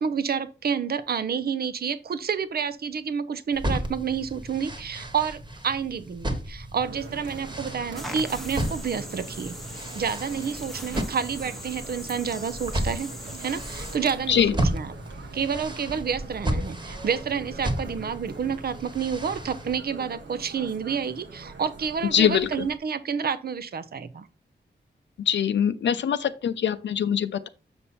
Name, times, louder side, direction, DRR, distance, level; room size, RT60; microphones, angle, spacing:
voice 1, 0.0-9.5 9.9-13.1 13.4-14.9 15.3-24.3, right 6 dB, 60° right, 14 dB, 0.6 m, -29 dB
sound 1, 3.5-19.8, right 1 dB, 25° right, 1.3 m, -34 dB
sound 2, 6.8-22.8, right 3 dB, 85° right, 1.4 m, -43 dB
sound 3, 7.9-14.0, equal, ahead, 0.9 m, -41 dB
voice 2, 22.1-22.7 25.2-27.5, left 8 dB, 85° left, 10 dB, 0.5 m, -23 dB
7.1 x 5.2 x 4.3 m, 0.33 s
wide cardioid pair, 105°, 18 cm